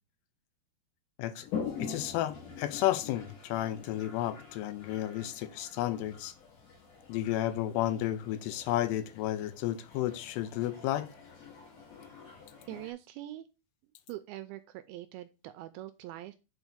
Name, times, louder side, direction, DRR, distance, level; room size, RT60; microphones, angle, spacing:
Toilet flush, 1.4-12.9, left 6 dB, 60° left, 3.2 m, -45 dB
voice 1, 1.8-6.3 7.1-11.1, left 13 dB, 90° left, 2.8 m, -32 dB
voice 2, 12.7-13.5 14.1-16.4, right 15 dB, 85° right, 2.2 m, -43 dB
7.2 x 4.6 x 5.0 m
omnidirectional pair, 4.7 m